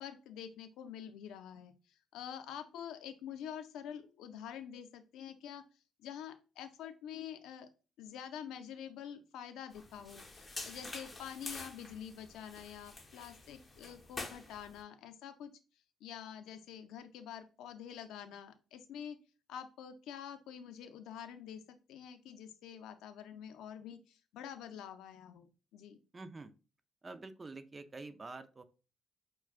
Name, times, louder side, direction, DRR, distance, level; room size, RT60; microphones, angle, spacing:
voice 1, 0.0-5.6 6.0-7.7 8.0-15.5 16.0-19.2 19.5-26.0, left 9 dB, 90° left, 9 dB, 0.4 m, -47 dB
sound 1, 9.7-14.8, left 3 dB, 25° left, 0.8 m, -47 dB
voice 2, 26.1-26.5 27.0-28.6, right 3 dB, 30° right, 11 dB, 0.4 m, -47 dB
5.8 x 2.2 x 2.4 m, 0.34 s
cardioid pair, 90°, 0 cm